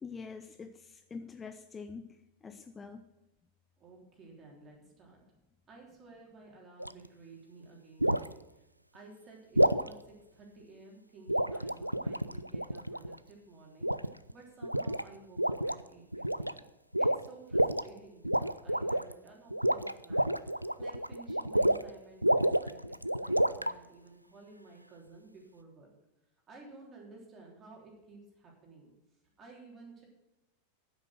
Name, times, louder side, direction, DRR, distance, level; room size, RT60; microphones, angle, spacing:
voice 1, 0.0-3.1, left 5 dB, 15° left, 9 dB, 0.5 m, -45 dB
voice 2, 3.8-5.3 5.7-8.4 8.9-16.6 17.0-22.9 23.2-25.9 26.5-28.9 29.4-30.0, right 3 dB, 25° right, -1 dB, 3.5 m, -54 dB
sound 1, 6.8-7.1 8.0-8.3 9.6-9.9 11.3-13.2 13.8-14.3 14.6-15.0 15.4-15.8 16.1-16.6 16.9-17.8 18.2-19.1 19.5-21.9 22.2-23.7, right 1 dB, 90° right, 0.3 m, -29 dB
9.6 x 7.9 x 6.3 m, 0.95 s
figure-of-eight pair, 90°, 0 cm